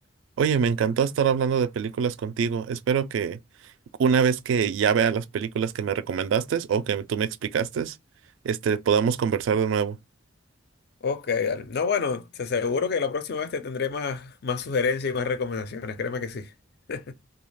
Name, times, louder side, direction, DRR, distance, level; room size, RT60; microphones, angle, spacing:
voice 1, 0.4-3.4 4.0-8.0 8.4-10.0, right 7 dB, 75° right, 0.3 m, -24 dB
voice 2, 11.0-16.5 16.9-17.1, left 5 dB, 55° left, 0.4 m, -28 dB
2.3 x 2.3 x 3.1 m
head